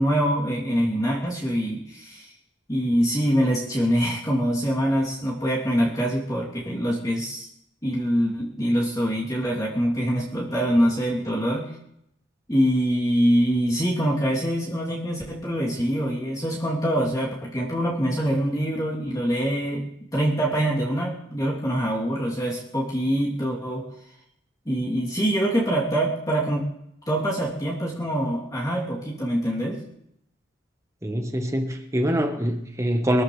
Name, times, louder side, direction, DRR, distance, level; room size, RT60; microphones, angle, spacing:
voice 1, 0.0-2.3 2.7-7.5 7.8-11.7 12.5-19.9 20.1-23.8 24.6-26.6 27.1-29.8, equal, 20° left, -6 dB, 3.1 m, -24 dB
voice 2, 31.0-33.2, equal, 15° right, 4 dB, 1.3 m, -24 dB
25.0 x 13.5 x 3.3 m, 0.78 s
head